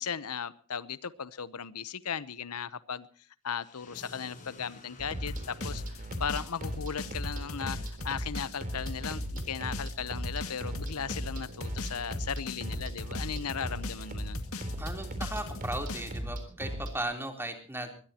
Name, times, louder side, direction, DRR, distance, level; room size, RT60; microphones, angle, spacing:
voice 1, 0.0-3.1 3.4-14.4, left 7 dB, 85° left, 16 dB, 0.9 m, -37 dB
sound 1, 3.5-8.5, left 2 dB, 35° left, 7.3 m, -54 dB
sound 2, 5.0-17.0, equal, 40° right, 3.8 m, -37 dB
sound 3, 5.3-16.2, left 2 dB, 65° left, 2.2 m, -41 dB
voice 2, 14.8-18.0, right 1 dB, 10° right, 4 dB, 3.6 m, -37 dB
22.0 x 21.5 x 2.9 m, 0.41 s
head